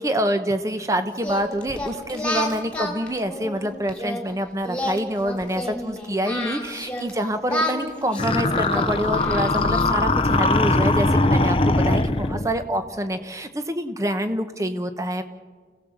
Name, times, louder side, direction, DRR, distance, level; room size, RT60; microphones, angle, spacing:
voice 1, 0.0-15.2, equal, 20° right, 8 dB, 1.1 m, -26 dB
Singing, 1.2-4.2 4.6-7.1 7.5-10.1, left 1 dB, 5° left, 2.6 m, -30 dB
sound 1, 8.2-12.5, left 2 dB, 30° left, 0.7 m, -21 dB
28.0 x 17.0 x 7.3 m, 1.5 s
head